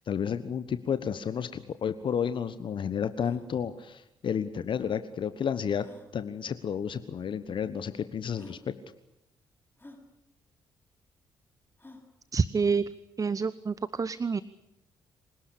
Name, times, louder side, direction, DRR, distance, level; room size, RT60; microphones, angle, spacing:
voice 1, 0.0-5.9 6.1-8.6, left 7 dB, 50° left, 12 dB, 1.2 m, -31 dB
sound 1, 3.2-3.5 4.8-4.9 5.8-6.1 7.1-7.2 7.9-8.0 8.3-8.6 9.8-10.0 11.8-12.1, left 2 dB, 20° left, 6.7 m, -51 dB
voice 2, 12.3-12.9 13.2-14.4, right 5 dB, 30° right, 17 dB, 0.9 m, -27 dB
26.0 x 19.0 x 8.5 m, 0.85 s
figure-of-eight pair, 40°, 11 cm